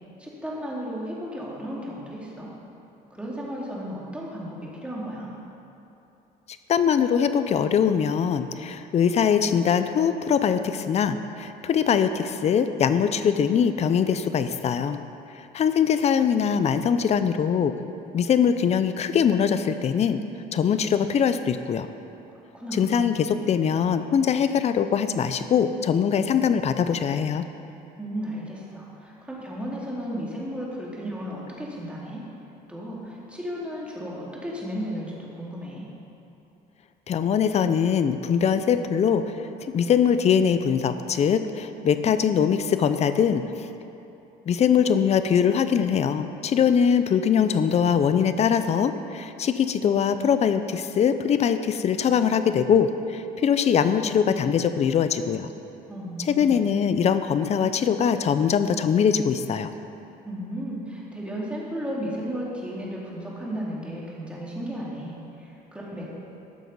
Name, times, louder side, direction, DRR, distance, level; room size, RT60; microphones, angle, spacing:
voice 1, 0.2-2.5 3.1-5.3 22.3-23.1 28.0-32.2 32.7-36.0 55.8-56.6 60.2-66.2, equal, 5° right, -5 dB, 2.5 m, -34 dB
voice 2, 6.7-15.0 15.3-17.7 18.1-20.2 20.5-21.9 22.7-27.4 37.1-39.3 39.7-43.7 44.5-55.5 56.3-59.7, left 7 dB, 40° left, 10 dB, 0.5 m, -22 dB
13.0 x 6.3 x 5.4 m, 2.9 s
cardioid pair, 110°, 17 cm